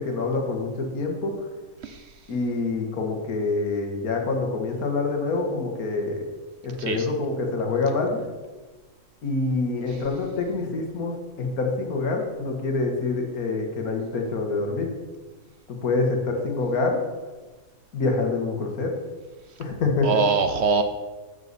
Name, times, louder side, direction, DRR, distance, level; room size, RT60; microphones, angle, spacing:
voice 1, 0.0-1.4 2.3-6.2 6.6-8.2 9.2-14.9 15.7-17.0 17.9-19.0 19.6-20.2, left 3 dB, 85° left, 2 dB, 1.9 m, -26 dB
voice 2, 20.0-20.8, right 4 dB, 60° right, 8 dB, 0.7 m, -23 dB
10.5 x 6.4 x 4.1 m, 1.3 s
omnidirectional pair, 1.5 m